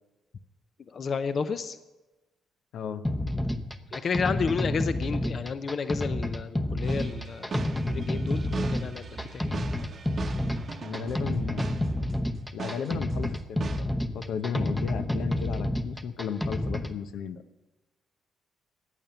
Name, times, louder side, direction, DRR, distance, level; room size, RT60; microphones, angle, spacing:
voice 1, 0.9-1.8 3.9-9.4, left 5 dB, 50° left, 11 dB, 0.7 m, -31 dB
voice 2, 2.7-3.0 10.8-12.0 12.5-17.4, left 7 dB, 80° left, 9 dB, 0.8 m, -35 dB
sound 1, 3.0-17.0, left 1 dB, 10° left, 0.8 m, -30 dB
sound 2, 6.8-12.3 12.6-13.8, right 5 dB, 45° right, 1.0 m, -39 dB
14.5 x 9.1 x 6.9 m, 1.1 s
cardioid pair, 90°, 0 cm